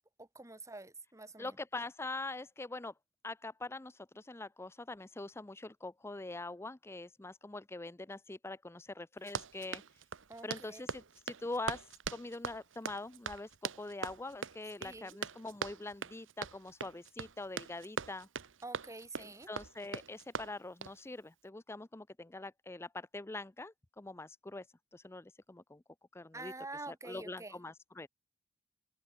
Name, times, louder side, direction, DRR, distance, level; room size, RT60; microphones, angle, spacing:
voice 1, 0.2-1.6 10.3-10.8 14.8-15.2 18.6-19.5 26.3-27.6, right 2 dB, 15° right, 2.2 m, -47 dB
voice 2, 1.4-2.9 3.2-9.8 10.4-18.3 19.2-24.7 24.9-25.8 26.1-26.5 26.9-28.1, left 2 dB, 15° left, 0.5 m, -44 dB
Run, 9.2-21.0, right 5 dB, 80° right, 1.2 m, -42 dB
open air
head